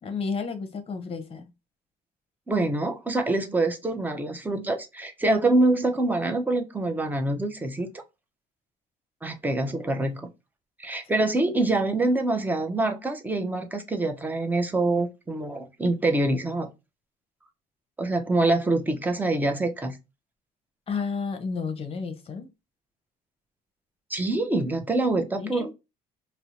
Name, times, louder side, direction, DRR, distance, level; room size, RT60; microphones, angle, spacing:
voice 1, 0.0-1.5 20.9-22.5 25.4-25.7, left 5 dB, 35° left, 0.7 m, -31 dB
voice 2, 2.5-8.0 9.2-10.3 10.8-16.7 18.0-20.0 24.1-25.7, right 2 dB, 10° right, 0.5 m, -25 dB
2.5 x 2.0 x 2.8 m
cardioid pair, 110°, 17 cm